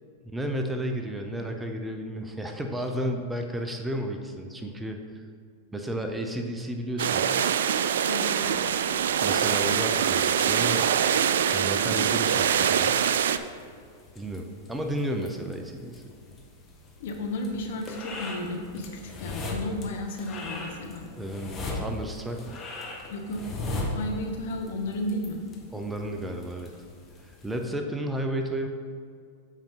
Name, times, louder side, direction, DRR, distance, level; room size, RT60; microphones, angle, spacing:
voice 1, 0.3-5.2 5.7-7.5 8.9-10.9 11.5-13.0 14.1-16.0 21.2-22.6 25.7-26.7 27.2-28.7, right 1 dB, 10° right, 4 dB, 0.7 m, -32 dB
sound 1, 7.0-13.4, right 8 dB, 75° right, 0.3 m, -24 dB
voice 2, 8.1-8.5 17.0-21.1 23.1-23.4 23.8-25.4, left 1 dB, 70° left, 3 dB, 1.1 m, -33 dB
sound 2, 8.4-27.6, left 2 dB, 25° left, 1.3 m, -40 dB
7.4 x 5.2 x 3.8 m, 2.2 s
hypercardioid pair, 105°, 0 cm